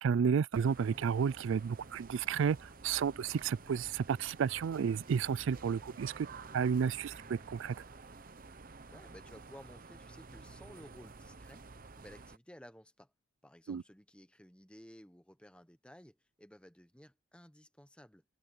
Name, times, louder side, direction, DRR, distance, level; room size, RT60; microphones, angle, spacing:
voice 1, 0.0-6.3 6.5-7.7 13.7-13.8, right 6 dB, 60° right, 0.3 m, -32 dB
sound 1, 0.5-12.4, right 3 dB, 40° right, 0.9 m, -51 dB
voice 2, 8.9-11.6 12.0-13.1 13.4-18.2, equal, 5° left, 1.0 m, -56 dB
head